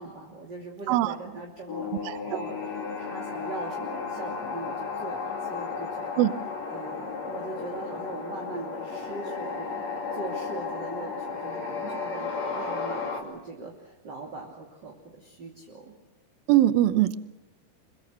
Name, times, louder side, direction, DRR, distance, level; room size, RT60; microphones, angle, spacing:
voice 1, 0.0-6.3 6.7-9.8 10.1-15.9, right 3 dB, 30° right, -1 dB, 2.9 m, -40 dB
sound 1, 1.7-13.2, left 5 dB, 45° left, 3.8 m, -34 dB
voice 2, 2.1-2.4 6.2-6.3 16.5-17.2, right 14 dB, 75° right, 12 dB, 2.5 m, -22 dB
26.5 x 23.5 x 6.6 m, 1.1 s
omnidirectional pair, 4.7 m